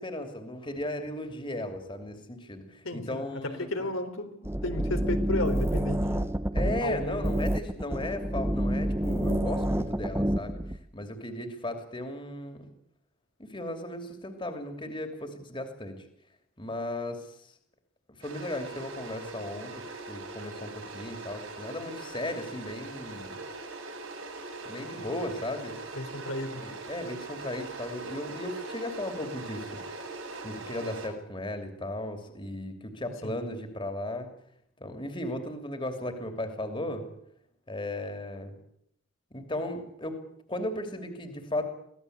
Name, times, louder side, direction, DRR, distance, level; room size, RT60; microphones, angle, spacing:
voice 1, 0.0-3.9 6.5-10.6 10.9-12.7 13.4-15.9 16.6-17.4 18.2-23.4 24.6-25.8 26.5-29.7 30.4-34.3 34.8-37.1 37.7-38.6 39.3-40.2 40.5-41.7, left 1 dB, 25° left, 6 dB, 2.9 m, -36 dB
voice 2, 2.8-3.2 3.6-4.4 4.6-6.3 6.8-7.3 25.9-26.6 33.2-33.4, left 2 dB, 80° left, 6 dB, 3.8 m, -33 dB
sound 1, 4.4-10.8, right 1 dB, 10° right, 0.8 m, -28 dB
sound 2, 18.2-31.1, right 3 dB, 85° right, 6.2 m, -41 dB
24.0 x 17.0 x 8.1 m, 0.73 s
head